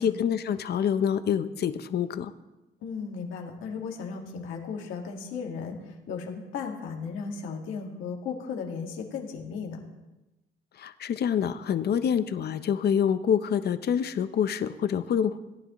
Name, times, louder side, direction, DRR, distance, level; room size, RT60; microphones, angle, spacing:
voice 1, 0.0-2.3 10.8-15.4, left 8 dB, 55° left, 12 dB, 0.7 m, -26 dB
voice 2, 2.8-9.8, left 5 dB, 90° left, 1 dB, 1.8 m, -35 dB
17.5 x 10.0 x 3.1 m, 1.0 s
cardioid pair, 90°, 20 cm